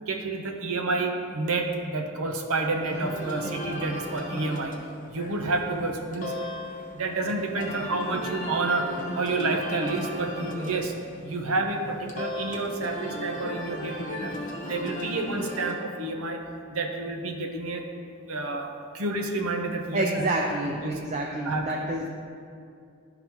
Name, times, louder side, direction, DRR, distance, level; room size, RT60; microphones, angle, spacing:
voice 1, 0.1-4.7 5.1-6.4 6.9-10.9 11.2-16.4 16.7-17.9 18.3-20.2 20.8-20.9 21.4-21.7, right 2 dB, 90° right, 4 dB, 0.7 m, -29 dB
sound 1, 2.8-15.7, left 1 dB, 35° left, 0.8 m, -36 dB
voice 2, 19.9-22.1, right 1 dB, 35° right, -1 dB, 0.4 m, -28 dB
11.5 x 3.9 x 2.9 m, 2.4 s
head